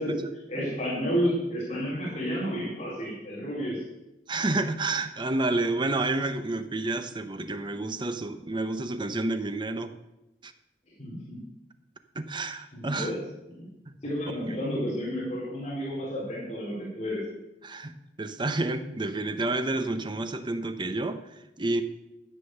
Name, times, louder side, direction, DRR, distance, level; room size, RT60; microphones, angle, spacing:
voice 1, 0.5-3.8 11.0-11.5 12.7-13.2 13.5-13.7 14.0-17.3, equal, 40° left, -7 dB, 4.3 m, -31 dB
voice 2, 4.3-10.0 10.4-10.5 12.2-13.1 17.6-21.3 21.6-21.8, right 2 dB, 25° right, 9 dB, 0.8 m, -29 dB
13.0 x 7.6 x 6.7 m, 0.94 s
head